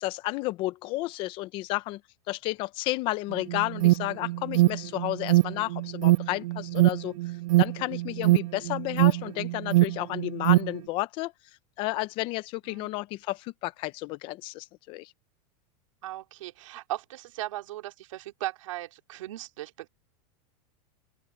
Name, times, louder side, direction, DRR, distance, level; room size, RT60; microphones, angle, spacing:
voice 1, 0.0-2.0 2.3-7.2 7.6-11.3 11.8-15.1, left 19 dB, 30° left, 0.8 m, -32 dB
Alarm, 3.3-10.8, right 18 dB, 90° right, 0.4 m, -23 dB
voice 2, 16.0-19.9, right 15 dB, 75° right, 3.4 m, -37 dB
open air
supercardioid pair, 170°, 17 cm